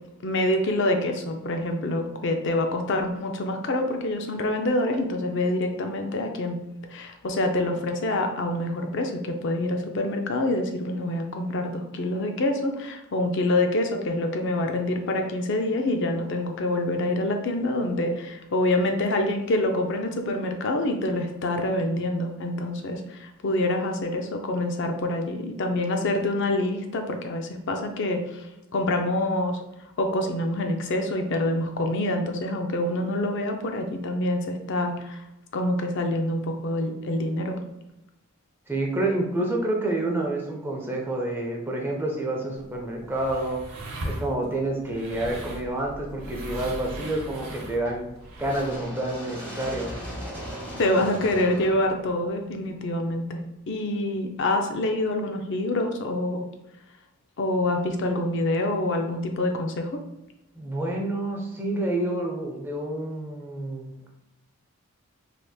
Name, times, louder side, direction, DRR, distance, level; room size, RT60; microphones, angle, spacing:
voice 1, 0.2-6.6 6.9-29.6 30.0-35.2 35.5-37.6 50.8-53.4 53.7-56.5 57.4-60.0, left 1 dB, 55° left, 4 dB, 0.4 m, -26 dB
voice 2, 38.7-43.6 44.0-48.1 48.4-49.9 60.5-64.1, right 1 dB, 10° right, -1 dB, 0.5 m, -28 dB
sound 1, 42.5-48.9, right 1 dB, 75° right, 0.8 m, -39 dB
sound 2, 45.1-53.1, equal, 5° left, 1.1 m, -39 dB
3.3 x 2.9 x 2.3 m, 0.89 s
head